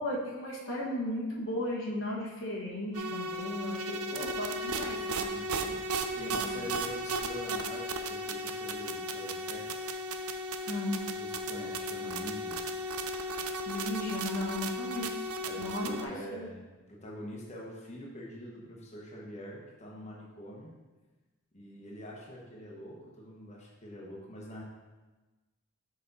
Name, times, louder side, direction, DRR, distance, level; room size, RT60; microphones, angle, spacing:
voice 1, 0.0-5.3 6.2-6.8 10.7-11.0 13.7-15.3 15.6-16.5, left 1 dB, 60° left, -2 dB, 1.1 m, -36 dB
sound 1, 2.9-16.1, right 1 dB, 75° right, 0.5 m, -35 dB
voice 2, 5.3-5.8 6.1-10.0 11.1-12.6 15.4-20.7 21.5-24.6, equal, 30° left, -3 dB, 1.0 m, -45 dB
5.7 x 5.3 x 4.0 m, 1.2 s
head